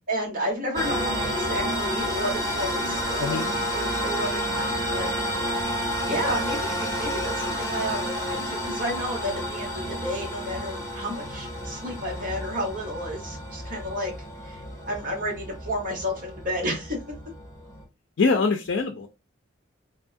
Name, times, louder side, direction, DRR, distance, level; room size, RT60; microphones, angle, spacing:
voice 1, 0.1-5.1 6.0-14.1 14.4-14.6 14.9-17.0, equal, 45° right, -1 dB, 1.3 m, -31 dB
sound 1, 0.7-17.8, equal, 20° left, 1.1 m, -30 dB
voice 2, 3.2-3.5 18.2-19.1, left 4 dB, 70° left, 5 dB, 0.4 m, -23 dB
3.5 x 2.3 x 2.5 m, 0.26 s
head